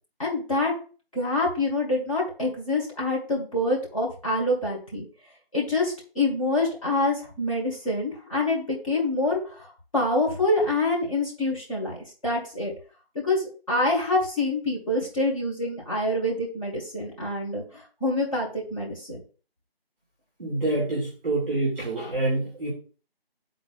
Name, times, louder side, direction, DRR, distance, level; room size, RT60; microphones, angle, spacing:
voice 1, 0.2-0.7 1.1-5.1 5.5-12.0 12.2-12.7 13.2-19.2, left 2 dB, 35° left, -4 dB, 1.8 m, -26 dB
voice 2, 20.4-22.7, right 2 dB, ahead, -6 dB, 1.5 m, -26 dB
10.5 x 4.0 x 2.4 m, 0.37 s
figure-of-eight pair, 170°, 31 cm